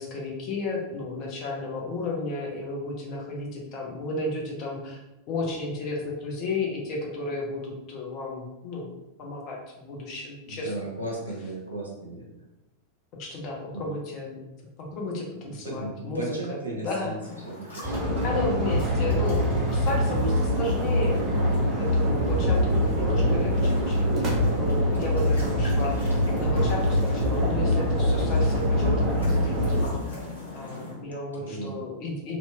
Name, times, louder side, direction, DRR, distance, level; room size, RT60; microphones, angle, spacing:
voice 1, 0.0-5.0 5.3-8.9 9.2-10.7 13.2-14.4 14.8-17.1 18.2-21.5 21.8-30.2 30.5-32.4, left 2 dB, 40° left, -2 dB, 0.7 m, -33 dB
voice 2, 10.5-12.3 13.7-13.8 15.4-17.2 17.5-18.4 22.3-22.5 28.7-29.1 31.3-31.8, right 2 dB, 80° right, -4 dB, 0.7 m, -36 dB
sound 1, 17.2-30.9, left 2 dB, 80° left, 1.1 m, -41 dB
sound 2, 17.8-29.8, equal, 30° right, 0.7 m, -24 dB
2.8 x 2.8 x 2.3 m, 0.96 s
figure-of-eight pair, 90°, 0 cm